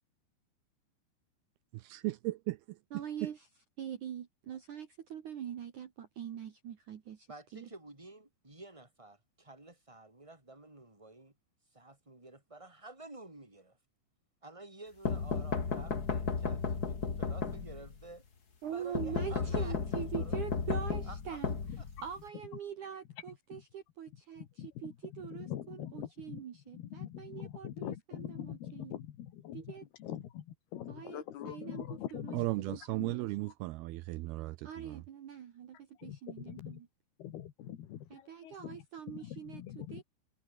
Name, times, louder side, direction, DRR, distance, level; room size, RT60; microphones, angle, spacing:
voice 1, 1.9-2.8 3.2-3.3 32.3-35.0, right 19 dB, 80° right, 2.3 m, -36 dB
voice 2, 2.9-3.5 3.8-7.3 7.5-7.7 18.6-21.5 22.0-28.9 29.5-29.8 30.9-33.3 34.6-36.9 38.1-40.0, right 9 dB, 55° right, 2.8 m, -44 dB
voice 3, 7.3-11.3 11.7-13.8 14.4-18.2 18.7-20.4 20.6-20.7 21.0-21.4 21.8-21.9, right 2 dB, 5° right, 5.5 m, -51 dB
sound 1, 15.1-18.0 18.9-22.3, left 5 dB, 35° left, 1.7 m, -34 dB
voice 4, 25.4-26.4 26.7-29.6 30.0-30.4 30.7-32.4 33.0-33.1 36.0-36.2 36.5-36.7 37.2-38.0 38.4-38.8 39.1-40.0, left 11 dB, 70° left, 3.6 m, -43 dB
omnidirectional pair, 5.0 m